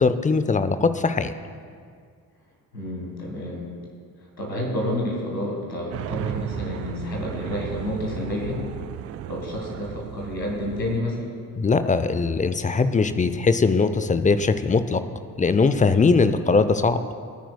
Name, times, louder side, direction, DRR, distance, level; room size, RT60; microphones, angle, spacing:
voice 1, 0.0-1.3 11.6-15.0 15.4-17.0, left 4 dB, 15° left, 11 dB, 0.6 m, -20 dB
voice 2, 2.7-3.7 4.4-8.7 9.3-11.3, left 1 dB, 85° left, 0 dB, 1.9 m, -29 dB
sound 1, 5.9-11.0, right 11 dB, 35° right, 0.4 m, -35 dB
25.5 x 10.0 x 2.3 m, 2.1 s
figure-of-eight pair, 45°, 48 cm